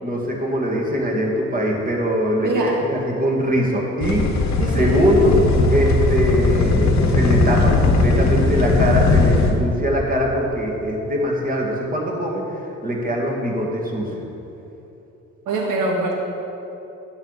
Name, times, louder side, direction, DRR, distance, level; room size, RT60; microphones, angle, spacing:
voice 1, 0.0-4.3 4.7-5.4 5.7-12.4 12.8-14.1, equal, 30° right, -1 dB, 2.1 m, -22 dB
voice 2, 2.4-2.8 4.6-4.9 15.5-16.1, right 3 dB, 90° right, -1 dB, 1.7 m, -23 dB
sound 1, 4.0-9.5, left 3 dB, 65° left, 1.2 m, -18 dB
11.0 x 8.1 x 4.1 m, 3.0 s
cardioid pair, 90°, 30 cm